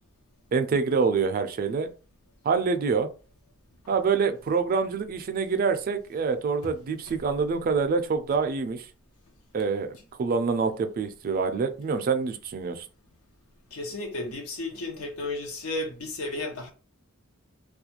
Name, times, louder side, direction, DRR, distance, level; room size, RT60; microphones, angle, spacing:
voice 1, 0.5-1.9 2.4-3.1 3.9-8.8 9.5-12.8, right 5 dB, 40° right, 0.3 m, -26 dB
voice 2, 13.7-16.7, left 2 dB, 85° left, 0.7 m, -33 dB
2.4 x 2.1 x 2.8 m
head